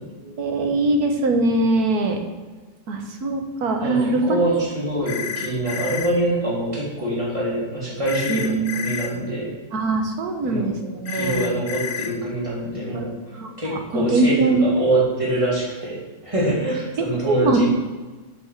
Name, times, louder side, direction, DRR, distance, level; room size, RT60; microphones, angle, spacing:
voice 1, 0.2-2.2 2.9-4.4 8.3-9.2 9.7-11.4 12.9-13.0 13.4-14.6 17.3-17.6, right 2 dB, 70° right, 4 dB, 1.7 m, -22 dB
voice 2, 3.8-9.5 10.4-17.7, right 1 dB, 20° right, -5 dB, 3.0 m, -25 dB
sound 1, 5.1-6.1 8.1-9.1 11.1-12.1, left 8 dB, 55° left, 1.2 m, -30 dB
7.6 x 6.2 x 6.6 m, 1.3 s
omnidirectional pair, 1.7 m